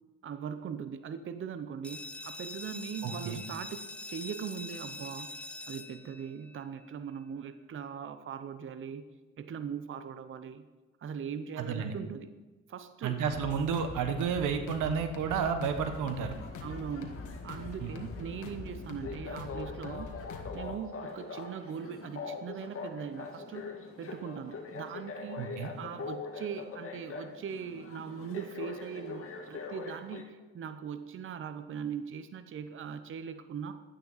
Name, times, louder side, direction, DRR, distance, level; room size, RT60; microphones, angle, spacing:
voice 1, 0.2-5.3 5.7-9.1 9.4-10.7 11.0-12.3 12.7-13.2 16.6-17.2 17.4-20.1 20.5-23.7 24.0-25.4 25.8-33.7, right 7 dB, 45° right, 10 dB, 0.7 m, -40 dB
sound 1, 1.8-7.3, left 2 dB, 5° left, 0.7 m, -44 dB
voice 2, 3.0-3.4 11.6-12.0 13.0-16.3 17.8-17.9 25.4-25.7, right 6 dB, 90° right, 7 dB, 1.2 m, -31 dB
sound 2, 13.3-20.8, left 4 dB, 75° left, 1.5 m, -44 dB
sound 3, 15.7-30.2, left 4 dB, 45° left, 1.7 m, -43 dB
11.5 x 9.5 x 4.0 m, 1.2 s
cardioid pair, 90°, 30 cm